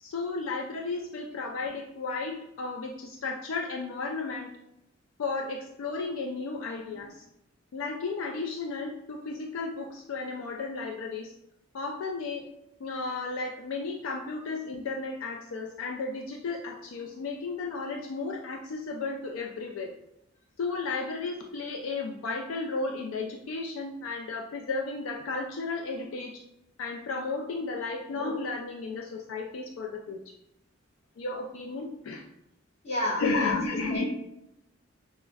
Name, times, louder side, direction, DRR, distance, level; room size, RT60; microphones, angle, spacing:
voice 1, 0.0-4.5 5.2-7.2 7.7-11.3 11.7-12.4 12.8-19.9 20.6-26.3 26.8-30.2 31.2-32.2 33.2-34.0, left 3 dB, 70° left, 1 dB, 0.3 m, -33 dB
voice 2, 32.8-34.0, equal, 30° left, -6 dB, 1.2 m, -32 dB
5.3 x 2.0 x 2.3 m, 0.82 s
head